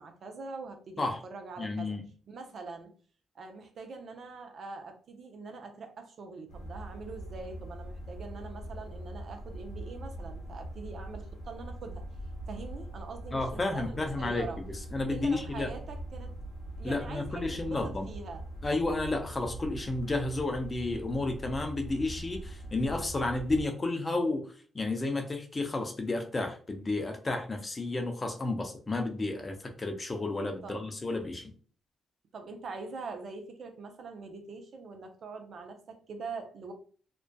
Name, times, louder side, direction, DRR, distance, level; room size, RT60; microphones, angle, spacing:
voice 1, 0.0-2.0 2.3-2.9 3.3-12.0 12.5-14.6 15.1-16.3 16.8-18.4 30.6-30.8 32.3-36.7, right 4 dB, 65° right, 5 dB, 0.5 m, -43 dB
voice 2, 1.6-2.0 13.3-15.7 16.8-18.1 18.6-24.5 24.7-31.4, left 2 dB, 35° left, 4 dB, 0.5 m, -32 dB
sound 1, 6.5-23.7, right 1 dB, 85° left, 0.7 m, -42 dB
2.5 x 2.2 x 2.2 m, 0.42 s
supercardioid pair, 60°, 0 cm